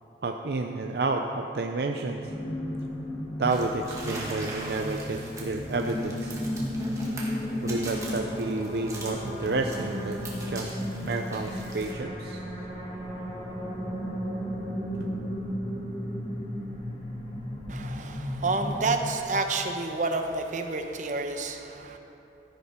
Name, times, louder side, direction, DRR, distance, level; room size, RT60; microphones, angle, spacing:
voice 1, 0.2-2.3 3.4-6.4 7.3-12.4 15.0-15.1, right 3 dB, 60° right, 4 dB, 0.5 m, -30 dB
sound 1, 2.2-18.9, equal, 30° left, 2.2 m, -34 dB
sound 2, 3.4-11.9, right 2 dB, 20° right, 1.8 m, -42 dB
voice 2, 17.7-22.0, right 3 dB, 45° right, 5 dB, 0.8 m, -29 dB
14.0 x 11.0 x 4.3 m, 2.9 s
head